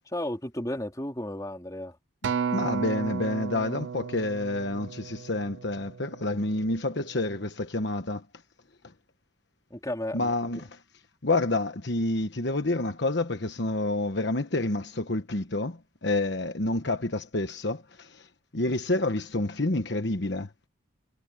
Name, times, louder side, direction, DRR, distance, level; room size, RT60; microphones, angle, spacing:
voice 1, 0.1-2.0 9.7-10.3, left 1 dB, 15° left, 3.1 m, -33 dB
Acoustic guitar, 2.2-6.6 7.3-7.4, right 6 dB, 60° right, 0.3 m, -34 dB
voice 2, 2.5-8.2 10.1-10.8 11.2-18.3 18.5-20.5, left 2 dB, 55° left, 1.2 m, -28 dB
head